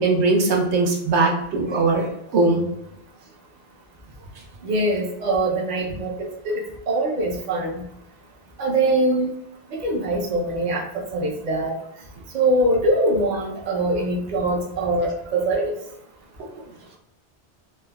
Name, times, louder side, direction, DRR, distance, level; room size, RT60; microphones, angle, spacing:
voice 1, 0.0-2.1 2.3-2.6, right 3 dB, 75° right, -1 dB, 0.9 m, -20 dB
voice 2, 4.6-7.8 8.6-9.3 9.7-11.7 12.3-15.7, right 1 dB, 50° right, -2 dB, 0.6 m, -23 dB
3.4 x 2.1 x 2.2 m, 0.79 s
omnidirectional pair, 1.2 m